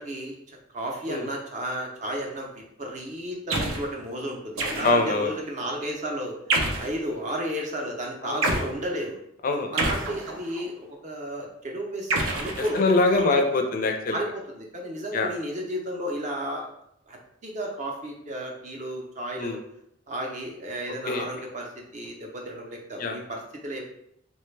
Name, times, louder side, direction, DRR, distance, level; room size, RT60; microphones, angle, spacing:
voice 1, 0.0-9.2 9.6-12.8 13.1-13.4 14.1-16.7 17.1-19.6 20.1-21.7 21.9-23.9, equal, 40° right, 0 dB, 0.6 m, -33 dB
sound 1, 3.5-3.9 4.6-5.2 6.5-7.0 8.4-8.7 9.8-10.6 12.1-13.2, right 2 dB, 85° right, 0.5 m, -27 dB
voice 2, 4.8-5.3 8.2-8.6 9.4-9.7 12.7-14.2 15.1-15.3 19.3-19.6 21.0-21.3 23.0-23.2, left 3 dB, 45° left, 4 dB, 0.4 m, -24 dB
3.1 x 2.1 x 3.2 m, 0.74 s
head